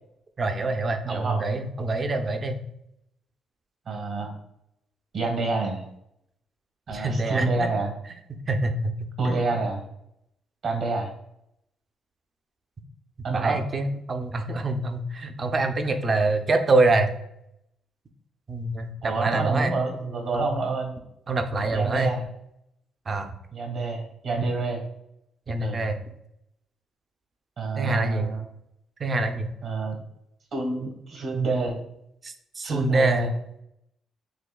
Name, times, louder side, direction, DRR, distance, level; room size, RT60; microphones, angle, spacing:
voice 1, 0.4-2.6 6.9-7.7 8.5-8.9 9.2-9.5 13.3-17.1 18.5-19.7 20.3-20.5 21.3-22.1 23.1-23.3 25.5-26.0 27.8-28.3 29.0-29.5 32.2-33.3, right 2 dB, 35° right, 6 dB, 0.6 m, -25 dB
voice 2, 1.0-1.4 3.9-4.4 5.1-5.9 6.9-7.9 9.2-9.8 10.6-11.1 13.2-13.6 19.0-20.9 21.7-22.2 23.5-24.8 25.6-25.8 27.6-28.4 29.6-30.0 30.5-31.8 32.6-33.3, right 3 dB, 65° right, 2 dB, 1.3 m, -28 dB
6.3 x 2.8 x 2.3 m, 0.79 s
cardioid pair, 90°, 0 cm